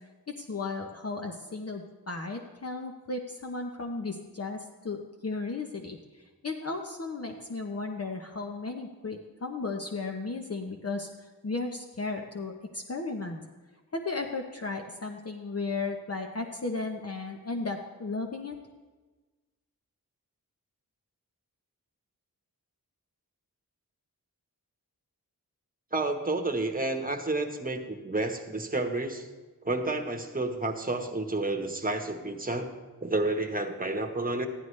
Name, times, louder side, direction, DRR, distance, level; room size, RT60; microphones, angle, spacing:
voice 1, 0.4-6.0 6.4-11.1 11.4-13.4 13.9-18.5, left 3 dB, 45° left, 3 dB, 0.8 m, -35 dB
voice 2, 25.9-29.3 29.6-32.7 33.0-34.5, right 2 dB, 25° right, 5 dB, 1.1 m, -30 dB
14.5 x 11.0 x 3.2 m, 1.3 s
wide cardioid pair, 90°, 36 cm